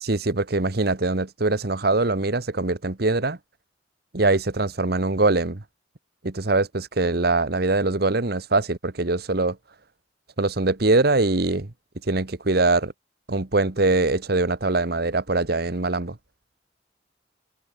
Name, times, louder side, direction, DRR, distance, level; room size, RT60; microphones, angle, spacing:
voice 1, 0.0-3.4 4.1-5.6 6.2-9.6 10.4-11.7 12.1-12.9 13.3-16.2, right 2 dB, 55° right, 1.3 m, -22 dB
head